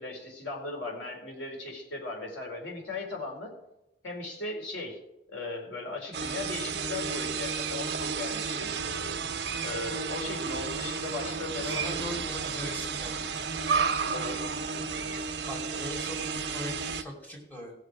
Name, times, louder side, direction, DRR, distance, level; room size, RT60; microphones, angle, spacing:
voice 1, 0.0-3.5 4.0-5.0 5.3-8.7 9.6-12.1 14.1-14.5, left 2 dB, 90° left, -1 dB, 4.1 m, -37 dB
sound 1, 6.1-17.0, right 5 dB, 65° right, 1.1 m, -32 dB
voice 2, 11.7-13.3 15.5-17.7, equal, 10° left, -3 dB, 2.7 m, -40 dB
19.0 x 6.6 x 4.8 m, 0.88 s
head